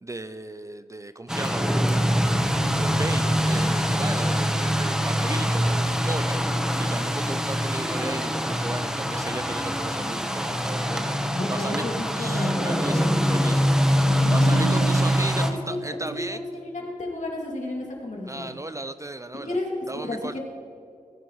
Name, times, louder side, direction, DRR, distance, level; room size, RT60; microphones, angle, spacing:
voice 1, 0.0-1.9 2.7-6.4 6.8-11.8 12.2-13.7 14.3-16.5 18.3-19.6 19.9-20.4, right 2 dB, 20° right, 11 dB, 0.4 m, -35 dB
sound 1, 1.3-15.5, equal, 5° right, 1.0 m, -24 dB
voice 2, 11.3-13.0 14.2-14.9 15.4-15.8 16.6-18.5 19.5-19.7 20.0-20.4, left 1 dB, 60° left, -1 dB, 2.5 m, -32 dB
18.5 x 9.7 x 3.1 m, 2.2 s
cardioid pair, 55°, 14 cm